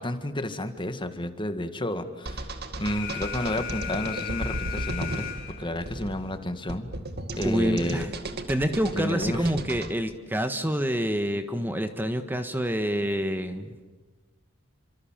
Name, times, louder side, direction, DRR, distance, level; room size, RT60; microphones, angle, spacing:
voice 1, 0.0-2.5 2.8-6.9 7.4-8.1 8.9-9.5, left 1 dB, 25° left, 9 dB, 1.9 m, -31 dB
sound 1, 2.3-9.9, right 2 dB, 55° right, 2.2 m, -35 dB
Alarm, 2.8-5.8, left 9 dB, 70° left, 4.2 m, -36 dB
voice 2, 7.4-8.1 8.5-13.8, equal, 10° right, 8 dB, 1.5 m, -27 dB
30.0 x 26.0 x 7.5 m, 1.3 s
head